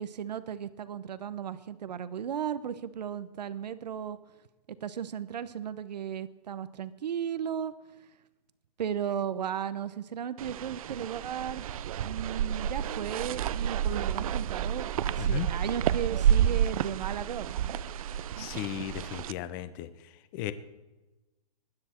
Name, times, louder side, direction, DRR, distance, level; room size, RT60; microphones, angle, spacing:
voice 1, 0.0-4.2 4.8-7.7 8.8-11.7 12.0-17.5, right 8 dB, 85° right, 14 dB, 0.9 m, -35 dB
sound 1, 10.4-19.3, right 9 dB, 60° right, 0.5 m, -30 dB
voice 2, 15.2-15.5 18.4-19.9 20.3-20.5, left 12 dB, 30° left, 13 dB, 0.9 m, -35 dB
20.0 x 9.9 x 4.4 m, 1.1 s
hypercardioid pair, 155°, 21 cm